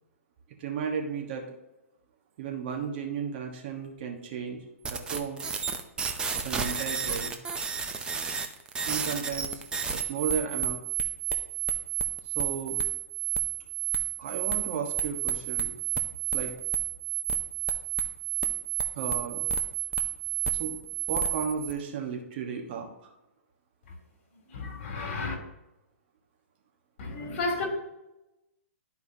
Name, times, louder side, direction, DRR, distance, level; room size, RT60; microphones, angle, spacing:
voice 1, 0.6-1.5 2.4-5.4 6.3-7.3 8.8-9.6 9.9-10.8 12.3-12.8 14.2-15.7 16.3-16.5 18.9-19.5 20.5-20.8 21.1-23.1, right 6 dB, 45° right, 1.3 m, -34 dB
sound 1, 4.8-21.7, right 8 dB, 10° right, 0.6 m, -31 dB
voice 2, 24.5-25.3 27.0-27.6, left 3 dB, 50° left, 2.8 m, -32 dB
12.5 x 4.8 x 2.8 m
hypercardioid pair, 140°, 8 cm